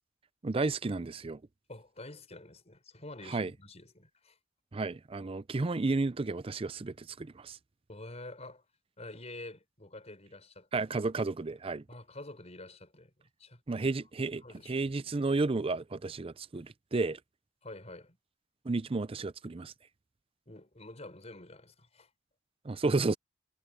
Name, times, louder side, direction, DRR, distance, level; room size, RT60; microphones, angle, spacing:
voice 1, 0.4-1.4 3.3-3.5 4.7-7.6 10.7-11.8 13.7-17.2 18.6-19.7 22.6-23.2, right 3 dB, 30° right, 0.5 m, -32 dB
voice 2, 1.7-4.4 7.9-8.6 9.0-10.9 11.9-13.1 13.4-13.6 14.4-14.9 17.6-18.2 20.5-22.1, left 2 dB, 35° left, 5.5 m, -48 dB
head